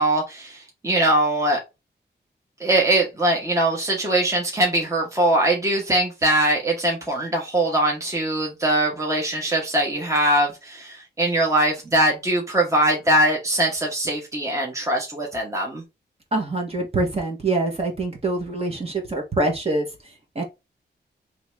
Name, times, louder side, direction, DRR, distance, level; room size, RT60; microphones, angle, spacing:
voice 1, 0.0-1.6 2.6-15.8, right 1 dB, 15° right, 1.2 m, -22 dB
voice 2, 16.3-19.8 20.3-20.4, right 2 dB, 35° right, 1.4 m, -24 dB
3.9 x 3.2 x 3.5 m
wide cardioid pair, 125°, 18 cm